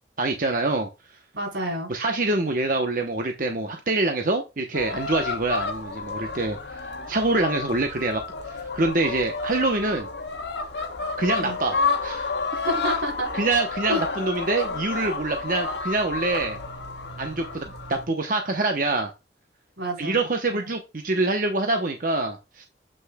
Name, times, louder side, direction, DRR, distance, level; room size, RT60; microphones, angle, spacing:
voice 1, 0.2-0.9 1.9-8.2 8.5-10.1 11.2-12.3 13.3-16.6 17.2-19.1 20.0-22.6, right 2 dB, 50° right, 0.9 m, -25 dB
voice 2, 1.3-1.9 11.4-11.6 12.5-13.3 13.9-14.0 19.8-20.7, equal, 85° right, 4.1 m, -29 dB
sound 1, 4.7-18.1, left 4 dB, 80° left, 1.3 m, -30 dB
7.9 x 6.4 x 2.3 m
head